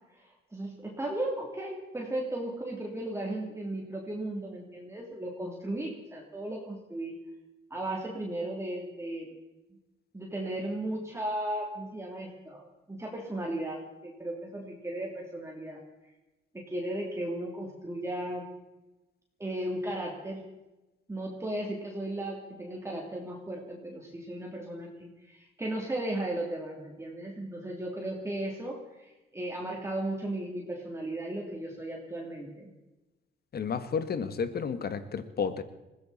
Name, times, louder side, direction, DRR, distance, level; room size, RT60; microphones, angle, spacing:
voice 1, 0.2-7.1 7.7-9.3 10.1-15.8 16.5-18.5 19.4-20.4 21.1-32.7, right 1 dB, 15° right, -1 dB, 3.0 m, -36 dB
voice 2, 33.5-35.6, left 6 dB, 55° left, 11 dB, 1.5 m, -31 dB
21.0 x 16.0 x 4.2 m, 1.0 s
cardioid pair, 90°, 20 cm